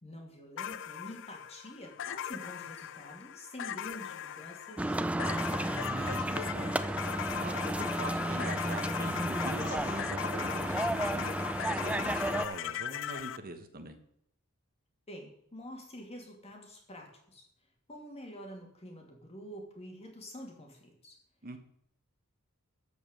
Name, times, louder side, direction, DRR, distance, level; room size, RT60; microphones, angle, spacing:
voice 1, 0.0-5.7 15.1-17.5 17.9-21.2, equal, 30° left, 1 dB, 2.4 m, -47 dB
sound 1, 0.6-13.4, left 10 dB, 60° left, 0.5 m, -39 dB
sound 2, 4.8-12.5, right 1 dB, 5° right, 0.3 m, -33 dB
voice 2, 5.9-11.4 11.7-14.0 21.4-21.6, right 2 dB, 40° right, 6 dB, 1.3 m, -43 dB
13.5 x 5.2 x 6.7 m, 0.73 s
head